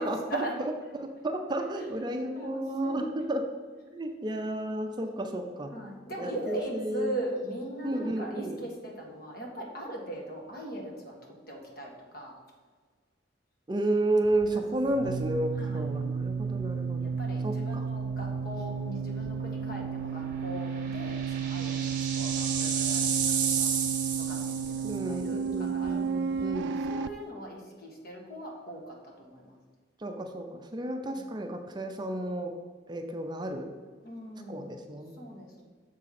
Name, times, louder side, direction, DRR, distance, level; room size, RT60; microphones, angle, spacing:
voice 1, 0.0-1.2 1.8-2.0 2.3-3.1 5.7-11.2 11.5-12.3 14.7-14.9 15.6-15.9 17.0-23.7 24.2-29.6 31.1-31.2 34.0-34.8 35.2-35.6, right 1 dB, 55° left, 0 dB, 1.5 m, -40 dB
voice 2, 1.0-3.5 3.9-5.7 6.2-7.1 7.8-8.6 13.7-17.1 17.4-17.9 24.8-26.7 30.0-32.5 32.9-33.7 34.5-35.2, right 1 dB, 25° right, 4 dB, 0.5 m, -32 dB
sound 1, 14.3-27.1, right 6 dB, 80° right, 0.3 m, -32 dB
sound 2, 20.5-25.1, right 7 dB, 50° right, 1.0 m, -32 dB
6.7 x 3.7 x 5.8 m, 1.5 s
head